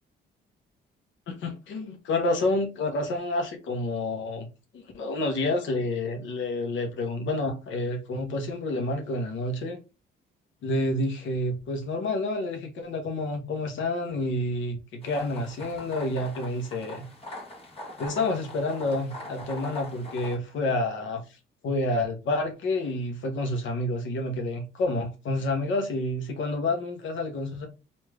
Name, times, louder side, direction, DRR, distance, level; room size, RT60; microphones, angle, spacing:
voice 1, 1.3-4.5 4.7-9.8 10.6-17.1 18.0-21.2 21.6-27.7, left 2 dB, 75° left, 0.9 m, -29 dB
sound 1, 15.0-20.4, left 1 dB, 30° left, 1.4 m, -42 dB
3.2 x 2.6 x 3.4 m
cardioid pair, 90°, 20 cm